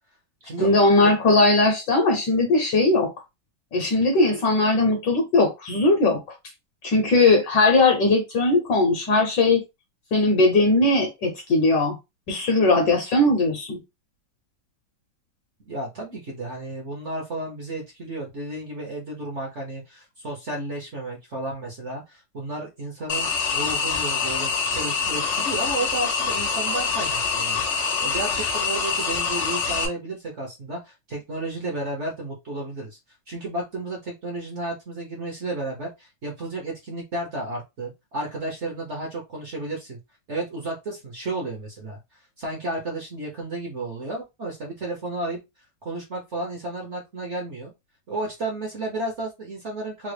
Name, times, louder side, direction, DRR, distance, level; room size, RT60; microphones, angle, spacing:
voice 1, 0.6-3.1 3.7-6.2 6.8-9.6 10.1-12.0 12.3-13.8, left 2 dB, 65° left, 1.2 m, -19 dB
voice 2, 15.7-27.7 28.0-33.0 33.3-40.0 40.3-42.0 42.4-45.4 45.8-47.7 48.1-50.1, right 2 dB, 55° right, 0.8 m, -32 dB
sound 1, 23.1-29.9, left 5 dB, 90° left, 0.6 m, -25 dB
3.8 x 2.1 x 3.2 m
omnidirectional pair, 2.4 m